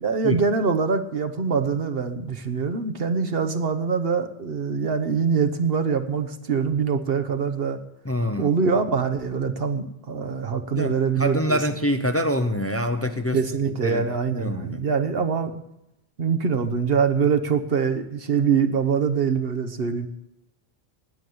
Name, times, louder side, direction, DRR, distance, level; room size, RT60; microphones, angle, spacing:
voice 1, 0.0-7.8 8.4-11.6 13.3-15.6 16.2-20.1, right 6 dB, 65° right, 7 dB, 1.3 m, -24 dB
voice 2, 8.0-8.5 10.7-13.4 13.8-14.1 14.4-14.8, equal, 15° left, 7 dB, 0.8 m, -25 dB
19.5 x 7.2 x 7.9 m, 0.88 s
omnidirectional pair, 1.1 m